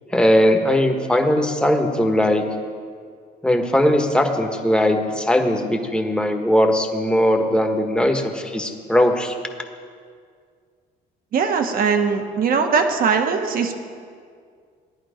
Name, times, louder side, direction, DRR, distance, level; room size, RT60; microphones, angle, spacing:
voice 1, 0.1-2.4 3.4-9.4, left 1 dB, 5° left, 3 dB, 1.4 m, -19 dB
voice 2, 11.3-13.7, right 5 dB, 60° right, 5 dB, 1.4 m, -20 dB
17.0 x 11.0 x 5.1 m, 2.1 s
cardioid pair, 110°, 17 cm